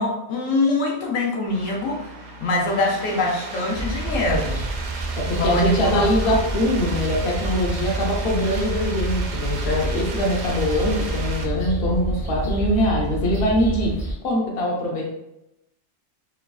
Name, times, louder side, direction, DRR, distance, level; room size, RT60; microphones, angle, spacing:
voice 1, 0.0-2.1 2.4-4.7 5.4-6.0, left 2 dB, 80° left, -1 dB, 1.0 m, -23 dB
sound 1, 1.5-11.4, right 3 dB, 65° right, 0.8 m, -35 dB
sound 2, 3.7-14.2, right 2 dB, 25° left, 0.6 m, -28 dB
voice 2, 5.2-14.0 14.2-15.1, left 1 dB, 55° left, -1 dB, 0.8 m, -23 dB
3.0 x 2.3 x 2.2 m, 0.86 s
omnidirectional pair, 1.3 m